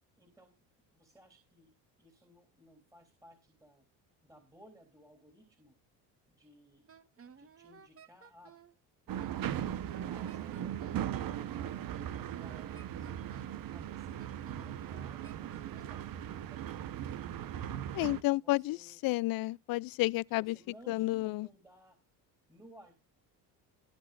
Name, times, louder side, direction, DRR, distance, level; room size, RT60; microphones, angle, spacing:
voice 1, 0.2-0.5 0.9-1.7 2.0-3.8 4.2-5.8 6.3-6.8 7.2-8.6 9.3-11.9 12.2-13.1 13.5-16.8 17.9-19.0 20.3-22.0 22.5-23.0, equal, 10° right, 3.5 m, -59 dB
Wind instrument woodwind instrument, 6.9-8.7 9.2-11.1 11.6-13.6 14.2-16.0, right 6 dB, 35° right, 1.7 m, -56 dB
sound 1, 9.1-18.2, right 10 dB, 60° right, 1.2 m, -38 dB
voice 2, 17.9-18.8 19.0-20.6 20.9-21.5, left 19 dB, 60° left, 0.5 m, -31 dB
19.0 x 9.0 x 2.6 m
cardioid pair, 95°, 40 cm